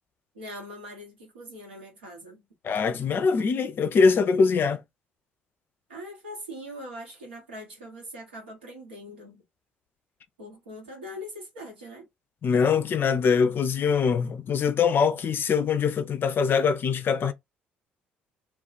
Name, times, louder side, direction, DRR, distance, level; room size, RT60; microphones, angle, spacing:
voice 1, 0.3-2.4 5.9-9.4 10.4-12.1, equal, 80° right, 1.0 m, -42 dB
voice 2, 2.6-4.8 12.4-17.3, left 5 dB, 40° left, 0.4 m, -23 dB
2.3 x 2.3 x 3.9 m
figure-of-eight pair, 50°, 5 cm